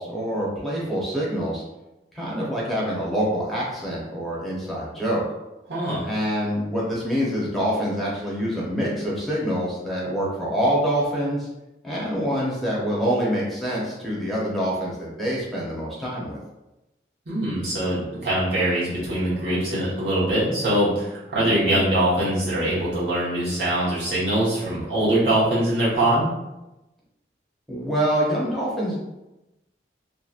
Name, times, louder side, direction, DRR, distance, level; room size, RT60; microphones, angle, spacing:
voice 1, 0.0-1.6 2.1-5.2 6.0-11.5 11.8-16.4 21.4-21.8 27.7-29.0, equal, ahead, -6 dB, 0.7 m, -26 dB
voice 2, 5.7-6.1 17.3-26.3, right 1 dB, 75° right, -9 dB, 1.3 m, -23 dB
2.8 x 2.5 x 2.4 m, 0.97 s
head